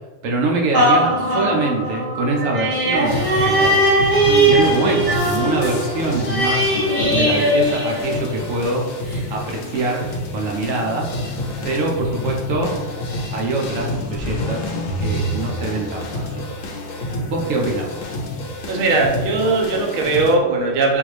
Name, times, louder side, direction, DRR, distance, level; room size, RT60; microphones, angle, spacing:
voice 1, 0.2-6.6 7.1-8.9 9.3-11.1 11.6-12.8 13.3-14.6 15.0-16.5 17.3-17.9, right 2 dB, 85° right, -1 dB, 1.2 m, -24 dB
sound 1, 0.7-8.6 9.1-9.2, right 1 dB, 20° right, 0.9 m, -19 dB
sound 2, 3.0-20.4, left 1 dB, 85° left, 1.0 m, -28 dB
voice 2, 18.7-21.0, right 3 dB, 55° right, 0 dB, 0.7 m, -19 dB
3.7 x 2.6 x 3.2 m, 1.2 s
omnidirectional pair, 1.3 m